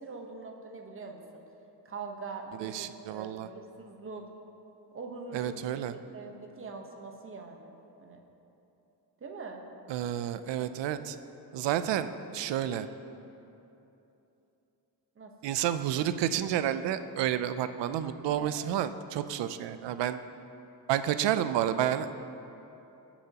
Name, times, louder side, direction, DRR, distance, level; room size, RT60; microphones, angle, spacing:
voice 1, 0.0-1.4 1.8-4.2 4.9-5.6 5.9-8.2 9.2-9.6 15.2-15.5 18.4-18.6, right 4 dB, 30° right, 2 dB, 1.1 m, -43 dB
voice 2, 2.6-3.5 5.3-5.9 9.9-11.2 11.5-12.9 15.4-20.2 20.9-22.2, right 11 dB, 85° right, 11 dB, 0.6 m, -30 dB
19.5 x 7.1 x 2.9 m, 2.9 s
cardioid pair, 140°, 42 cm